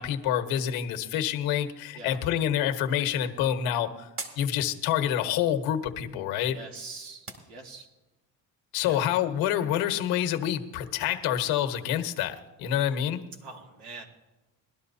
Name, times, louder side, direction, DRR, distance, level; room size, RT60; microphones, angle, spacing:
voice 1, 0.0-4.1 4.4-6.6 8.7-13.2, left 10 dB, 85° left, 7 dB, 1.2 m, -27 dB
sound 1, 2.7-8.1, right 3 dB, 40° right, 2.4 m, -48 dB
voice 2, 6.5-7.9 8.8-9.0 13.4-14.0, right 3 dB, 85° right, 0 dB, 3.0 m, -43 dB
20.5 x 12.0 x 2.7 m, 1.1 s
cardioid pair, 105°, 35 cm